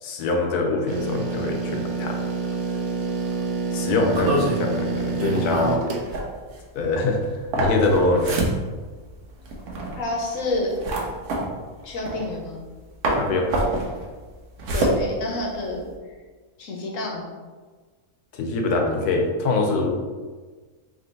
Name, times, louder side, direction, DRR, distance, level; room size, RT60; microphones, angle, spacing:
voice 1, 0.0-2.2 3.7-5.8 6.7-8.4 13.1-13.5 18.3-19.9, left 3 dB, 85° left, 2 dB, 1.2 m, -23 dB
sound 1, 0.9-6.1, right 4 dB, 65° right, 0.8 m, -27 dB
sound 2, 4.1-12.8 13.0-15.9, right 1 dB, 85° right, 1.3 m, -27 dB
voice 2, 10.0-10.7 11.8-12.6 14.7-15.8 16.6-17.3, left 2 dB, 65° left, 0 dB, 1.1 m, -28 dB
3.8 x 3.0 x 3.8 m, 1.4 s
omnidirectional pair, 1.6 m